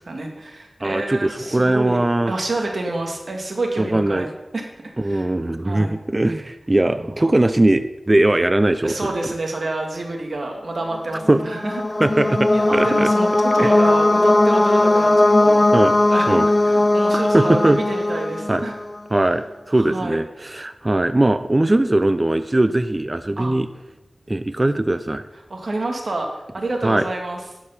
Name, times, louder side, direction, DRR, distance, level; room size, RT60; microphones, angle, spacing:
voice 1, 0.0-2.0 2.3-4.3 4.5-4.7 5.0-5.3 5.6-6.0 6.9-7.3 8.8-11.8 12.2-15.8 16.1-16.4 16.6-18.8 19.7-20.2 23.4-23.6 25.5-27.4, right 2 dB, 70° right, 2 dB, 1.7 m, -28 dB
voice 2, 0.8-2.3 3.8-4.3 5.0-9.1 11.3-11.4 12.0-13.1 13.6-13.7 15.7-16.0 16.3-16.5 17.1-17.8 18.5-18.6 19.1-23.7 24.3-25.2 26.8-27.0, right 1 dB, 30° right, 11 dB, 0.4 m, -20 dB
sound 1, 11.2-19.0, left 2 dB, 35° left, 0.4 m, -18 dB
11.0 x 4.8 x 5.6 m, 1.0 s
wide cardioid pair, 60°, 0 cm